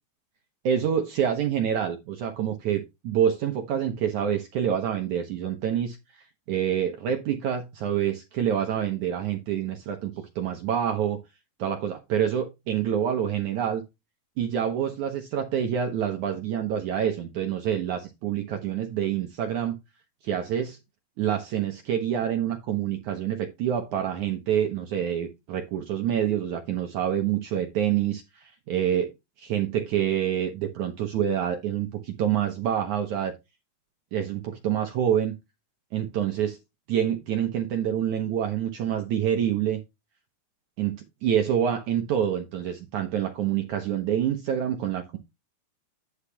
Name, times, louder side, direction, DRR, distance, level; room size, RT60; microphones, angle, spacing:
voice 1, 0.6-11.2 11.6-13.8 14.4-19.8 20.2-20.8 21.2-29.1 29.4-33.3 34.1-35.4 35.9-36.6 36.9-39.8 40.8-45.2, right 9 dB, 75° right, 1.7 m, -27 dB
10.0 x 5.6 x 3.4 m
omnidirectional pair, 4.9 m